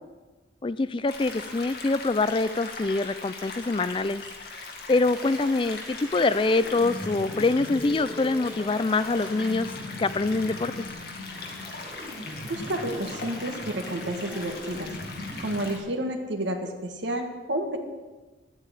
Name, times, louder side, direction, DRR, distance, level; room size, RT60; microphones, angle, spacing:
voice 1, 0.6-4.2 4.9-9.7 10.0-10.7, left 3 dB, 25° left, 14 dB, 0.4 m, -25 dB
sound 1, 1.1-15.8, left 3 dB, 55° left, 2.1 m, -40 dB
sound 2, 5.1-15.7, left 1 dB, ahead, 3.6 m, -40 dB
voice 2, 12.5-14.9 15.4-17.8, right 1 dB, 75° right, 2 dB, 1.7 m, -30 dB
10.5 x 9.0 x 9.2 m, 1.3 s
head